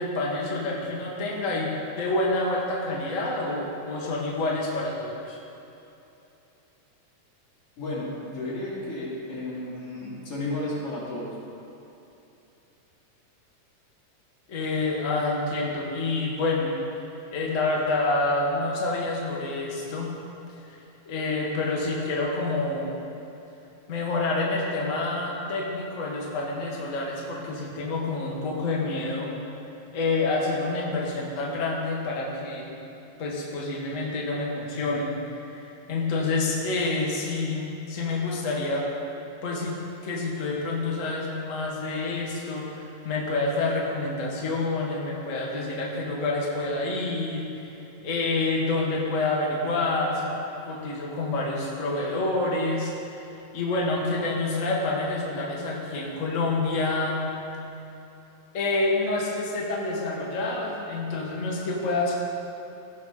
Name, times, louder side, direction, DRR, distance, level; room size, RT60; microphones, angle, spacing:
voice 1, 0.0-1.7 2.0-5.4 14.5-16.8 17.3-20.1 21.1-23.0 23.9-29.3 29.9-32.7 33.2-35.2 35.5-35.6 35.9-38.8 39.4-39.8 40.0-47.4 48.0-50.3 50.6-53.2 53.5-57.2 58.5-62.2, left 2 dB, 80° left, -3 dB, 0.7 m, -28 dB
voice 2, 7.8-11.3, left 2 dB, 45° left, -8 dB, 3.4 m, -33 dB
16.0 x 6.5 x 3.8 m, 2.9 s
omnidirectional pair, 3.7 m